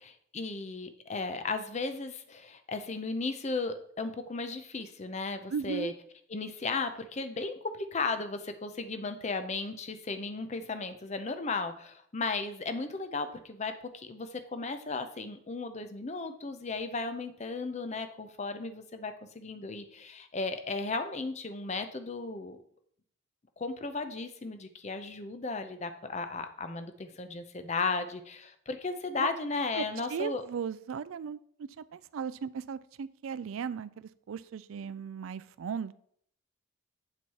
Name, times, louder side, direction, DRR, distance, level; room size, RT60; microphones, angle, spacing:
voice 1, 0.0-5.9 6.3-22.6 23.6-30.4, left 3 dB, 35° left, 9 dB, 0.6 m, -35 dB
voice 2, 5.5-5.9 29.2-29.3 29.8-35.9, right 6 dB, 75° right, 16 dB, 0.4 m, -37 dB
7.8 x 4.2 x 4.6 m, 0.64 s
head